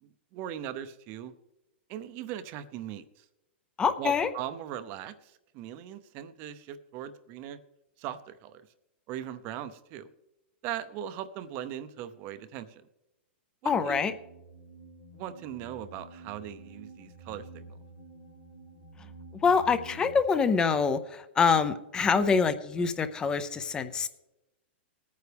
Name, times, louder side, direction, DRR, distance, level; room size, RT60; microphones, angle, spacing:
voice 1, 0.0-1.3 1.9-3.2 4.0-7.6 8.0-8.6 9.1-10.1 10.6-12.8 13.6-14.1 15.1-17.6, right 10 dB, 30° right, 12 dB, 0.7 m, -39 dB
voice 2, 3.8-4.3 13.6-14.1 19.4-24.1, left 5 dB, 10° left, 12 dB, 0.6 m, -25 dB
sound 1, 14.0-20.2, right 2 dB, 85° left, 1.9 m, -49 dB
20.5 x 9.4 x 3.4 m, 0.94 s
supercardioid pair, 160°, 6 cm